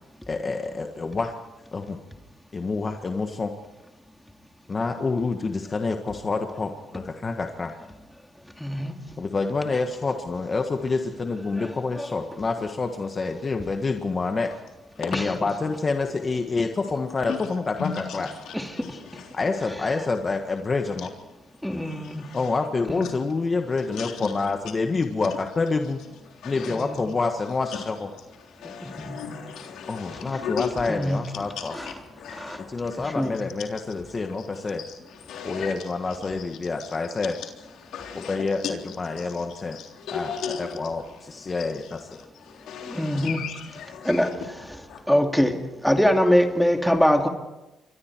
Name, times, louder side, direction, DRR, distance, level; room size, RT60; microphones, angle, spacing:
voice 1, 0.3-1.4 1.7-2.0 2.5-3.5 4.7-7.8 9.2-14.5 15.0-18.3 19.3-21.1 22.3-26.0 26.4-28.0 29.9-31.7 32.7-34.8 35.4-37.3 38.3-39.8 40.1-40.3 40.6-42.0, left 3 dB, 35° left, 5 dB, 1.7 m, -27 dB
voice 2, 8.6-8.9 11.6-11.7 12.0-12.1 18.5-18.7 21.6-22.2 22.9-23.0 26.7-27.0 28.8-29.2 31.0-31.2 32.4-32.6 33.2-33.3 42.9-43.4 44.0-44.3 45.1-45.5 45.8-47.3, equal, 5° left, 4 dB, 2.4 m, -22 dB
voice 3, 15.0-15.3 17.3-19.6 21.0-21.1 21.6-22.6 23.0-23.1 23.9-24.5 26.3-26.8 27.7-27.9 28.1-45.0, left 7 dB, 80° left, 2 dB, 3.6 m, -38 dB
28.0 x 24.0 x 4.7 m, 1.0 s
cardioid pair, 90°, 0 cm